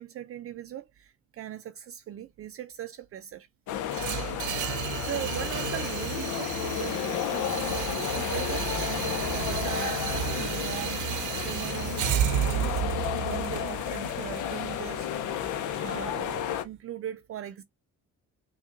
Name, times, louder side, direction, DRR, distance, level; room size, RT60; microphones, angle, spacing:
voice 1, 0.0-3.5 4.6-10.1 10.4-12.8 13.2-15.4 15.8-17.6, right 11 dB, 50° right, 0.4 m, -40 dB
sound 1, 3.7-16.6, left 10 dB, 75° left, 0.7 m, -32 dB
sound 2, 3.9-16.0, right 10 dB, 80° right, 0.7 m, -32 dB
5.6 x 2.4 x 2.4 m
cardioid pair, 90°, 30 cm